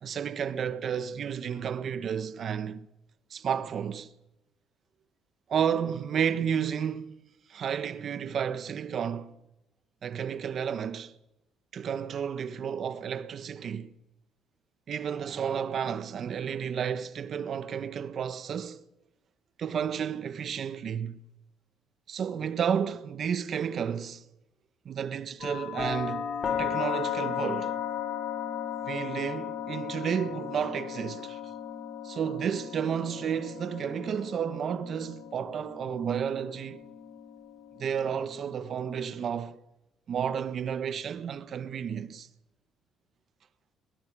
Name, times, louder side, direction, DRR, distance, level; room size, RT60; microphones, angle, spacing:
voice 1, 0.0-2.9 3.3-4.1 5.5-7.1 7.5-9.3 10.0-11.1 11.7-13.9 14.9-18.8 19.6-21.2 22.1-24.2 24.8-27.7 28.8-31.4 32.0-36.8 37.8-39.6 40.1-42.3, right 8 dB, 50° right, 1.3 m, -32 dB
sound 1, 25.4-39.3, left 9 dB, 45° left, 3.8 m, -36 dB
22.0 x 21.5 x 6.3 m
cardioid pair, 120°, 0 cm